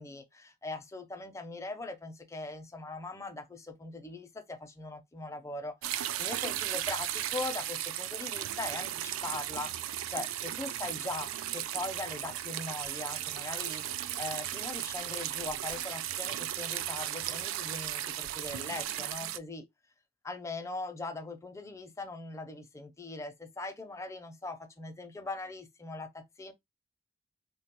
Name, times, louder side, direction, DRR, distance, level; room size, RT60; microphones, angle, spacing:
voice 1, 0.0-19.7 20.2-26.5, left 3 dB, 15° left, 0.4 m, -41 dB
sound 1, 5.8-19.4, right 12 dB, 85° right, 0.3 m, -36 dB
3.4 x 2.2 x 2.9 m
head